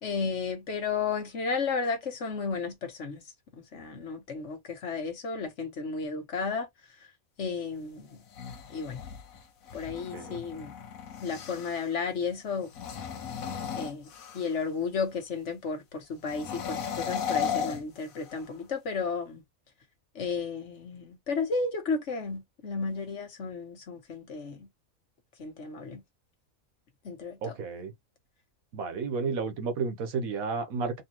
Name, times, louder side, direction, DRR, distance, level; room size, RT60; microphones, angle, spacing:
voice 1, 0.0-3.2 3.6-6.7 7.4-8.2 8.7-9.0 9.7-10.7 11.2-12.7 13.8-19.4 20.1-24.7 25.4-26.0 27.0-27.6, left 4 dB, 60° left, 1.3 m, -33 dB
sound 1, 8.1-11.9 12.6-14.7 16.2-18.5, left 7 dB, 75° left, 1.3 m, -36 dB
voice 2, 27.4-27.9 28.7-31.0, right 4 dB, 80° right, 1.3 m, -32 dB
3.8 x 2.7 x 2.9 m
omnidirectional pair, 1.4 m